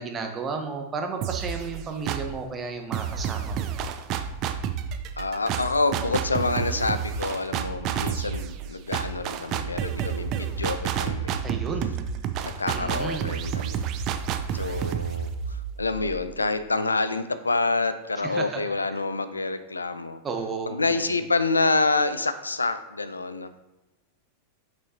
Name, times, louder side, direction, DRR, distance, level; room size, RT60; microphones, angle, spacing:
voice 1, 0.0-3.7 11.4-11.9 12.7-13.3 18.2-18.6 20.2-21.0, right 4 dB, 20° right, 4 dB, 0.9 m, -33 dB
sound 1, 1.2-2.4 2.9-16.6, right 8 dB, 40° right, 0.4 m, -30 dB
voice 2, 5.2-11.3 12.4-13.8 14.5-20.2 20.7-23.5, left 3 dB, 80° left, 12 dB, 0.4 m, -27 dB
6.0 x 5.4 x 2.8 m, 1.1 s
figure-of-eight pair, 90°, 0 cm